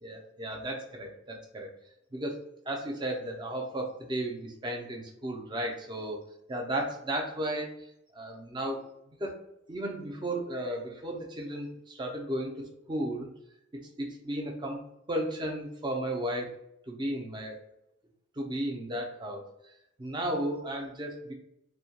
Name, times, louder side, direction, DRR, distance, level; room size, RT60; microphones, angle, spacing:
voice 1, 0.0-1.7 2.1-6.2 6.5-7.8 8.1-8.8 9.2-9.4 9.7-12.5 12.9-13.3 14.0-14.8 15.1-16.6 16.9-17.6 18.4-19.5 20.0-21.3, right 1 dB, 20° right, 1 dB, 0.4 m, -34 dB
2.2 x 2.2 x 2.7 m, 0.80 s
head